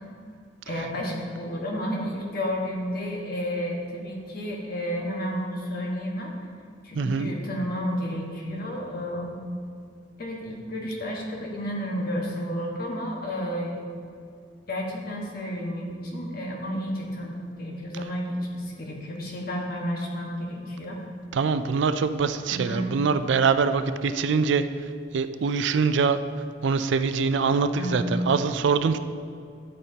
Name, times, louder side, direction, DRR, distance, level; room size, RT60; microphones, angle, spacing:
voice 1, 0.6-6.3 6.8-9.4 10.2-13.8 14.7-18.3 18.5-21.0 22.5-22.8 27.8-28.1, equal, 55° left, -1 dB, 1.5 m, -31 dB
voice 2, 7.0-7.3 21.3-24.6 25.1-26.2 26.6-29.0, right 5 dB, 75° right, 11 dB, 0.4 m, -23 dB
10.5 x 8.6 x 2.9 m, 2.3 s
head